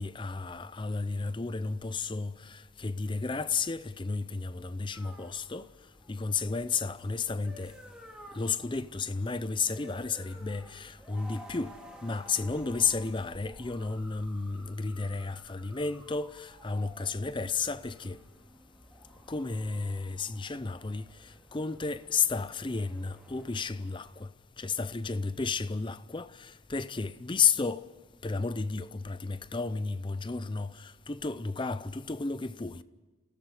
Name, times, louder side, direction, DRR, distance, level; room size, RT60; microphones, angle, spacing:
voice 1, 0.0-5.7 6.1-7.7 8.3-11.7 12.0-18.2 19.3-21.0 21.5-24.3 24.6-27.9 28.2-32.8, left 4 dB, 25° left, 0.5 m, -32 dB
sound 1, 4.9-24.3, equal, 5° right, 2.5 m, -53 dB
30.0 x 17.5 x 4.9 m
head